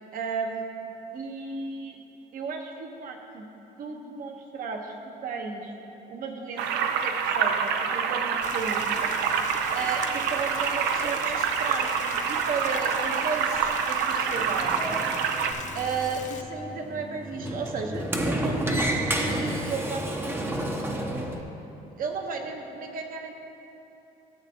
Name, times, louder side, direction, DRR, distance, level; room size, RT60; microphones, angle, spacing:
voice 1, 0.1-2.0 2.3-3.5 3.8-5.7 6.1-9.0 9.7-15.0 15.7-20.0 22.0-23.3, right 4 dB, 55° right, 3 dB, 1.0 m, -34 dB
sound 1, 6.6-15.5, right 6 dB, 85° right, 0.6 m, -27 dB
Rain, 8.4-16.4, left 7 dB, 45° left, 0.6 m, -42 dB
Sliding door, 14.4-21.4, right 1 dB, 15° right, 0.7 m, -31 dB
13.5 x 7.4 x 2.8 m, 2.9 s
cardioid pair, 110°, 17 cm